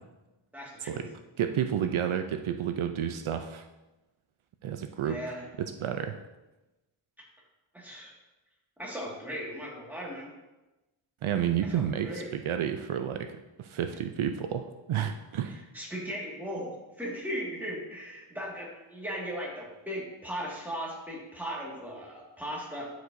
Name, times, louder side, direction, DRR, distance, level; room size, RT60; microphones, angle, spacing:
voice 1, 0.5-1.0 5.0-5.4 7.7-8.1 8.8-10.3 11.6-12.3 15.7-22.9, equal, 5° right, -4 dB, 1.8 m, -37 dB
voice 2, 1.4-3.7 4.6-6.2 11.2-15.6, right 9 dB, 75° right, 7 dB, 0.5 m, -31 dB
12.0 x 4.8 x 2.6 m, 1.1 s
wide cardioid pair, 130°, 49 cm